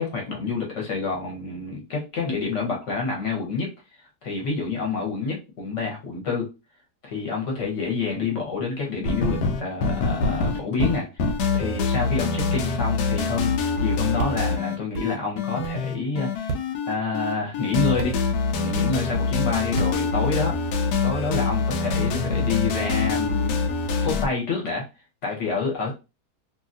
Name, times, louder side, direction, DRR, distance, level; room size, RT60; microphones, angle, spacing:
voice 1, 0.0-3.7 4.2-6.5 7.0-13.5 13.8-16.6 16.9-18.2 18.6-20.5 21.0-24.9 25.2-25.9, left 4 dB, 50° left, -1 dB, 1.2 m, -28 dB
sound 1, 9.0-24.3, left 4 dB, 80° left, 1.2 m, -25 dB
sound 2, 14.2-14.3 14.9-15.1 15.6-15.8 16.5-16.7 18.0-18.1 19.8-19.9, right 5 dB, 65° right, 0.9 m, -30 dB
2.7 x 2.7 x 2.6 m, 0.27 s
omnidirectional pair, 1.8 m